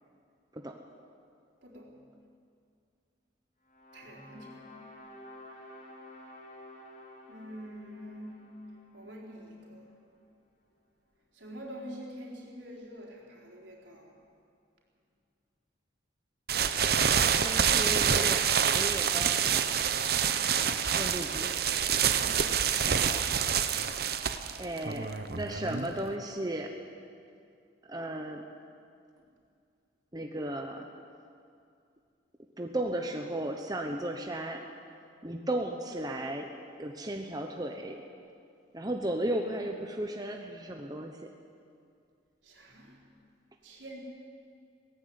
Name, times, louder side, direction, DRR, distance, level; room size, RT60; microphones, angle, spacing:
voice 1, 1.6-2.0 3.9-4.9 7.3-10.0 11.3-14.2 22.3-22.8 24.8-25.7 42.4-43.1 43.6-44.0, equal, 75° right, -2 dB, 4.4 m, -47 dB
sound 1, 3.6-9.9, left 1 dB, 45° left, 3.4 m, -51 dB
sound 2, 16.5-26.1, right 7 dB, 55° right, 0.9 m, -27 dB
voice 2, 17.4-19.5 20.9-21.6 24.6-26.7 27.9-28.4 30.1-30.9 32.6-34.6 35.2-36.5 36.8-38.0 38.7-41.3, right 1 dB, 20° right, 3 dB, 1.0 m, -35 dB
17.5 x 15.5 x 9.5 m, 2.4 s
head